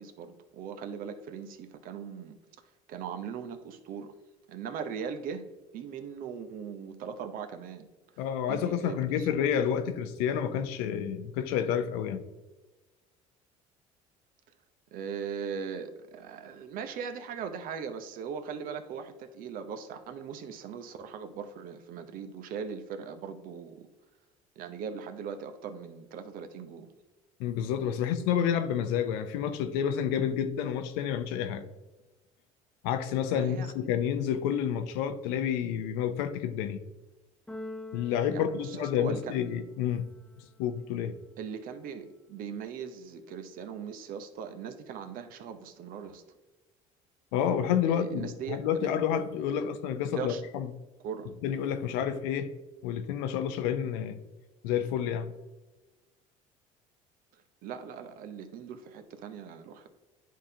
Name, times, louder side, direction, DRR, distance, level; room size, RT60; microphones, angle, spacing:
voice 1, 0.0-2.4 2.9-4.1 4.5-5.4 5.7-7.9 8.5-9.6 14.9-23.9 24.6-26.9 33.3-33.9 38.3-39.3 41.4-46.2 47.9-48.9 50.1-50.4 51.0-51.3 57.6-59.9, right 6 dB, 65° right, 0.8 m, -39 dB
voice 2, 8.2-12.2 27.4-31.6 32.8-36.8 37.9-40.1 40.6-41.2 47.3-50.7 51.4-52.5 52.8-54.2 54.6-55.3, left 9 dB, 85° left, 0.6 m, -29 dB
Keyboard (musical), 37.5-39.6, left 2 dB, 5° left, 0.5 m, -45 dB
10.5 x 3.7 x 2.8 m
supercardioid pair, 90°, 16 cm